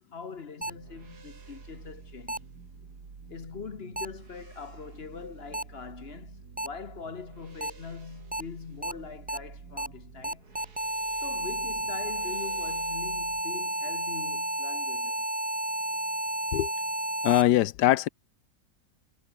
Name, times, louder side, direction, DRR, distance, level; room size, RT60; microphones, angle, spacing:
voice 1, 0.0-2.5 3.3-10.6 11.2-15.3, left 5 dB, 40° left, 1.3 m, -42 dB
sound 1, 0.6-0.7 2.3-2.4 4.0-4.1 5.5-5.6 6.6-6.7 7.6-7.7 8.3-8.4 8.8-8.9 9.3-9.4 9.8-9.9 10.2-17.4, right 1 dB, 5° right, 1.2 m, -31 dB
sound 2, 0.6-13.4, right 5 dB, 70° right, 3.0 m, -49 dB
voice 2, 17.2-18.1, left 14 dB, 85° left, 1.3 m, -22 dB
omnidirectional pair, 1.7 m